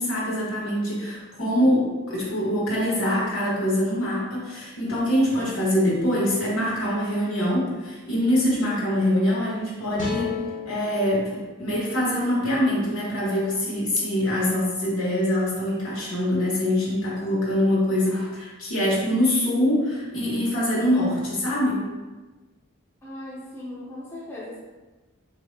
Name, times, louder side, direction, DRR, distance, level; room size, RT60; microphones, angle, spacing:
voice 1, 0.0-10.4 10.6-21.8, left 1 dB, 75° left, -6 dB, 1.4 m, -24 dB
sound 1, 10.0-13.2, left 5 dB, 35° left, 0.8 m, -36 dB
voice 2, 23.0-24.6, left 1 dB, 10° left, -6 dB, 0.5 m, -38 dB
4.0 x 2.7 x 3.2 m, 1.2 s
head